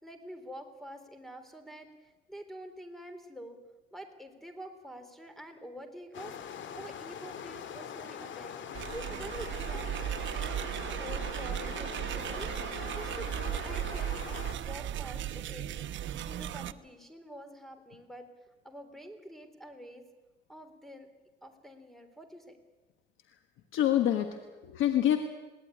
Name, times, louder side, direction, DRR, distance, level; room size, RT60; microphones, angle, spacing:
voice 1, 0.0-3.6 3.9-8.5 8.9-10.6 11.0-12.5 12.9-20.0 20.5-21.1 21.4-22.6, equal, ahead, 8 dB, 3.6 m, -47 dB
sound 1, 6.1-14.5, left 8 dB, 70° left, 1.9 m, -43 dB
sound 2, 8.7-16.7, right 11 dB, 70° right, 1.0 m, -36 dB
voice 2, 23.7-25.2, left 11 dB, 90° left, 7 dB, 1.5 m, -27 dB
21.5 x 17.0 x 9.9 m, 1.2 s
cardioid pair, 90°, 20 cm